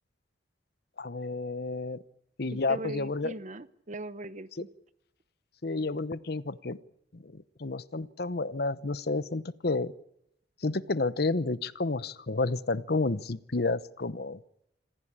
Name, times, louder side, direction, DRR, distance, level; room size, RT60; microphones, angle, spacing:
voice 1, 1.0-2.0 2.4-3.3 5.6-6.8 7.2-7.3 7.6-9.9 10.6-14.4, left 3 dB, 60° left, 17 dB, 0.9 m, -30 dB
voice 2, 2.4-4.7, right 2 dB, 45° right, 15 dB, 1.0 m, -40 dB
26.5 x 16.0 x 8.7 m, 0.77 s
head